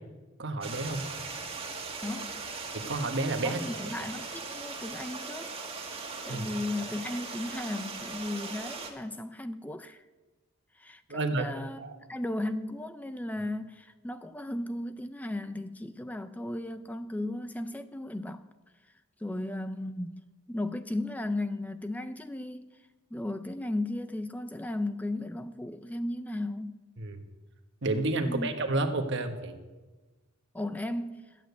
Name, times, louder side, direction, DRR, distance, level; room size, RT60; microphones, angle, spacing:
voice 1, 0.4-1.0 2.7-3.6 6.3-6.5 11.1-11.5 11.8-12.0 27.0-27.2 27.8-29.5, right 2 dB, 60° right, 1.3 m, -30 dB
Stream, 0.6-8.9, right 4 dB, 30° right, 1.7 m, -39 dB
voice 2, 2.0-2.4 3.4-5.5 6.2-10.0 10.7-11.8 12.1-18.5 19.2-22.7 23.1-26.8 28.2-28.5 30.5-31.4, left 1 dB, 10° left, 0.4 m, -35 dB
12.5 x 8.8 x 8.2 m
head